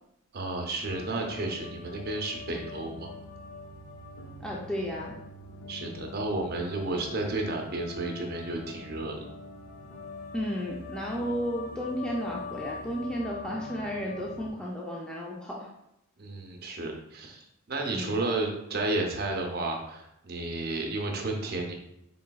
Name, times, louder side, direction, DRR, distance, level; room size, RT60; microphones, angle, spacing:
voice 1, 0.3-3.2 5.7-9.3 16.2-21.7, right 2 dB, 50° right, 1 dB, 0.7 m, -32 dB
sound 1, 0.8-14.5, left 3 dB, 80° left, 0.5 m, -43 dB
voice 2, 4.4-5.2 10.3-15.7 17.9-18.2, equal, 5° left, -3 dB, 0.3 m, -33 dB
4.0 x 3.8 x 2.2 m, 0.82 s
head